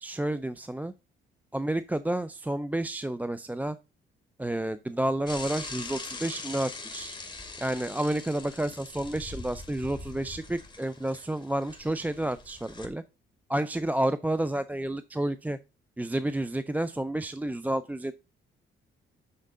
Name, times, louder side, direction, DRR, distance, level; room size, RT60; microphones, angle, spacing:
voice 1, 0.0-0.9 1.5-3.8 4.4-7.2 7.6-13.0 13.5-15.6 16.0-18.1, right 1 dB, 10° right, 0.5 m, -30 dB
Bicycle / Mechanisms, 5.3-12.9, left 3 dB, 25° left, 2.7 m, -42 dB
8.3 x 6.5 x 3.7 m
cardioid pair, 90°, 20 cm